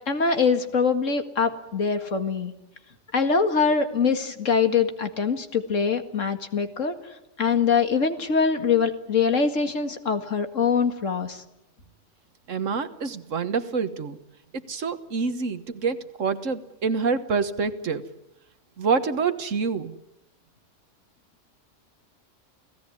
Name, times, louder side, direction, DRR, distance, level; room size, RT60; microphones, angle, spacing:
voice 1, 0.1-2.5 3.1-7.0 7.4-11.4, left 5 dB, 85° left, 7 dB, 2.4 m, -23 dB
voice 2, 12.5-14.2 14.7-18.1 18.8-20.0, right 5 dB, 85° right, 11 dB, 1.7 m, -27 dB
29.0 x 17.5 x 9.8 m, 0.90 s
omnidirectional pair, 1.3 m